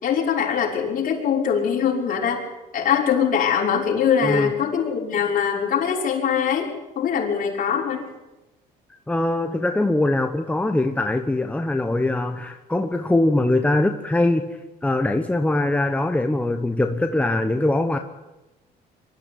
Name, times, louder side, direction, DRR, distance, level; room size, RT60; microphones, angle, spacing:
voice 1, 0.0-2.4 2.7-8.0, left 7 dB, 55° left, -1 dB, 6.0 m, -22 dB
voice 2, 9.1-18.0, left 2 dB, 10° left, 5 dB, 1.3 m, -22 dB
23.5 x 14.0 x 9.8 m, 1.0 s
cardioid pair, 110°, 17 cm